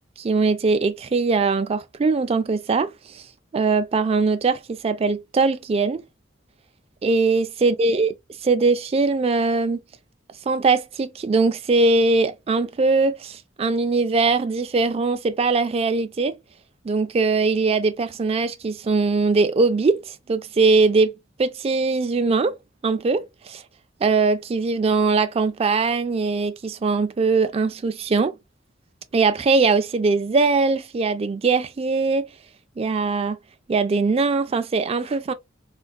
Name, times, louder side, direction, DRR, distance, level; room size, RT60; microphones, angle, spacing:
voice 1, 0.2-3.2 3.5-6.0 7.0-8.1 8.4-9.8 10.5-16.4 16.8-22.6 22.8-23.6 24.0-28.4 29.1-32.3 32.8-33.4 33.7-35.3, right 3 dB, 30° right, 0.3 m, -21 dB
3.4 x 2.3 x 2.2 m
head